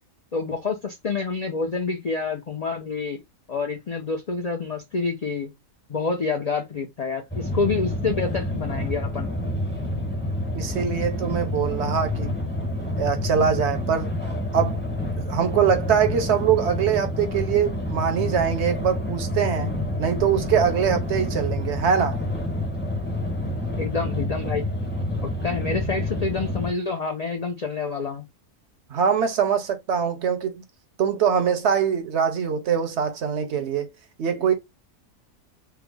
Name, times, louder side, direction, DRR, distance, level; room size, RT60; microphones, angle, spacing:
voice 1, 0.3-3.2 3.5-5.5 5.9-9.3 23.8-24.6 25.2-28.2, left 4 dB, 80° left, 0.3 m, -28 dB
sound 1, 7.3-26.7, left 1 dB, 10° left, 0.7 m, -28 dB
voice 2, 10.5-12.3 13.0-14.1 14.5-14.8 15.3-19.7 20.0-22.2 28.9-30.6 31.0-33.9 34.2-34.5, right 7 dB, 65° right, 0.8 m, -23 dB
3.4 x 2.0 x 3.3 m
omnidirectional pair, 1.5 m